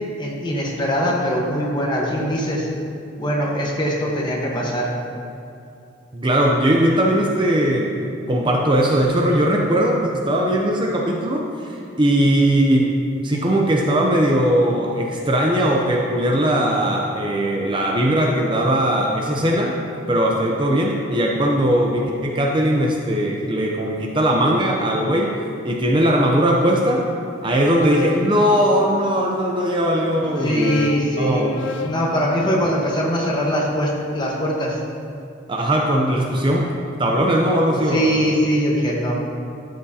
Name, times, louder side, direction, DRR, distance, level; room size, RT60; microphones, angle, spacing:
voice 1, 0.2-2.7 3.2-4.9 30.4-34.8 36.4-36.5 37.9-39.1, equal, 20° left, -2 dB, 1.2 m, -22 dB
voice 2, 6.1-8.0 8.3-12.9 13.2-19.8 20.1-25.4 25.6-27.1 27.4-30.8 31.2-31.6 35.5-38.1, right 1 dB, 25° right, -1 dB, 0.5 m, -19 dB
sound 1, 27.4-29.3 30.1-34.3, left 5 dB, 65° left, 0.4 m, -34 dB
12.5 x 7.7 x 2.8 m, 2.5 s
head